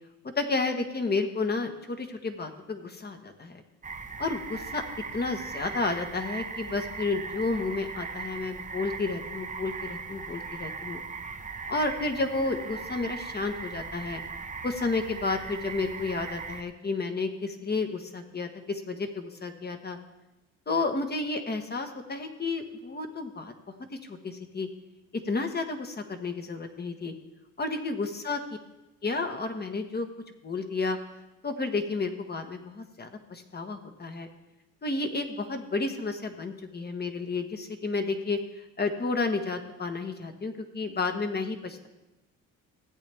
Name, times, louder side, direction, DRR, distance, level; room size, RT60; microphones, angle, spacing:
voice 1, 0.3-3.6 4.2-4.8 5.1-11.0 11.7-14.2 14.6-20.0 20.7-23.5 24.0-24.7 25.2-27.1 27.6-28.4 29.0-30.1 30.4-31.0 31.4-34.3 34.8-38.4 38.8-41.9, left 3 dB, 30° left, 6 dB, 1.4 m, -31 dB
sound 1, 3.8-16.6, right 5 dB, 25° right, 0.9 m, -39 dB
15.5 x 8.3 x 3.5 m, 1.0 s
supercardioid pair, 70°, 31 cm